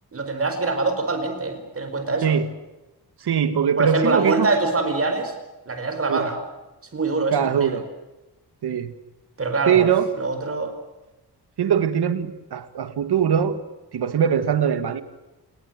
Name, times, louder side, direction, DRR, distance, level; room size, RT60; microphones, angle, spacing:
voice 1, 0.1-2.4 3.8-5.3 5.7-6.4 6.9-7.8 9.4-9.9 10.1-10.7, right 3 dB, 35° right, 7 dB, 5.0 m, -24 dB
voice 2, 3.2-4.5 6.1-6.2 7.3-7.9 8.6-8.9 9.7-10.1 11.6-13.6 13.9-15.0, right 8 dB, 80° right, 11 dB, 2.2 m, -21 dB
28.5 x 20.5 x 7.8 m, 1.0 s
wide cardioid pair, 140°, 39 cm